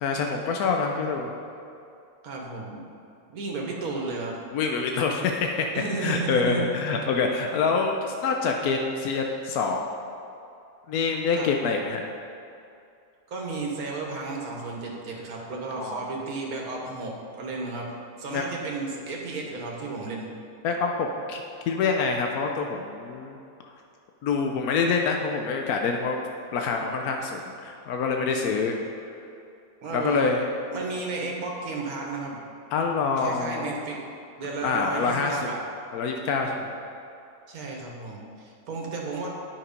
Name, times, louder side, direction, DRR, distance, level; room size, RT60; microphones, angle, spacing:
voice 1, 0.0-1.3 4.5-5.7 6.0-9.8 10.9-12.0 15.8-16.0 18.3-18.4 20.6-23.4 24.2-26.2 26.5-28.8 29.9-30.5 32.7-33.7 34.6-35.5 35.9-36.7, left 4 dB, 85° left, 2 dB, 1.2 m, -26 dB
voice 2, 2.2-2.9 3.3-4.4 5.7-6.6 11.4-11.5 13.3-17.9 18.2-20.3 29.8-30.3 30.7-32.4 33.2-34.1 34.4-35.6 37.5-39.3, right 3 dB, 80° right, -1 dB, 1.7 m, -33 dB
9.7 x 5.9 x 5.2 m, 2.6 s
omnidirectional pair, 1.5 m